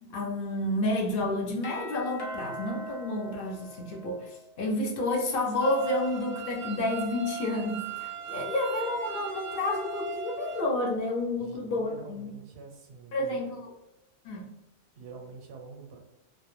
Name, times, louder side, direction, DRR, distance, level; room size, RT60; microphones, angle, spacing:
voice 1, 0.0-12.3 13.1-13.7 14.2-14.4, left 1 dB, 65° left, 0 dB, 0.7 m, -30 dB
Doorbell, 1.6-4.5, equal, 40° left, 0.3 m, -42 dB
sound 1, 5.6-10.6, right 5 dB, 60° right, 0.6 m, -38 dB
voice 2, 11.4-13.4 15.0-16.0, right 4 dB, 85° right, 2 dB, 0.9 m, -46 dB
2.1 x 2.0 x 3.0 m, 0.96 s
omnidirectional pair, 1.1 m